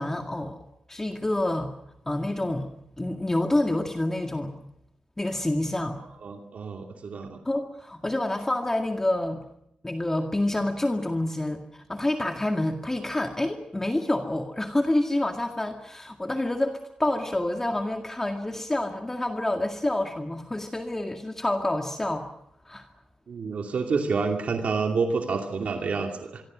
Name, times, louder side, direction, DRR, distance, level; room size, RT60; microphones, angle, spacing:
voice 1, 0.0-1.7 2.1-2.7 3.0-4.6 5.2-6.0 7.4-9.4 9.8-22.3 22.7-22.9, left 1 dB, 15° left, 4 dB, 2.0 m, -28 dB
voice 2, 6.2-7.4 23.3-26.4, right 4 dB, 70° right, 3 dB, 2.6 m, -28 dB
25.5 x 23.5 x 6.3 m, 0.78 s
cardioid pair, 80°, 2 cm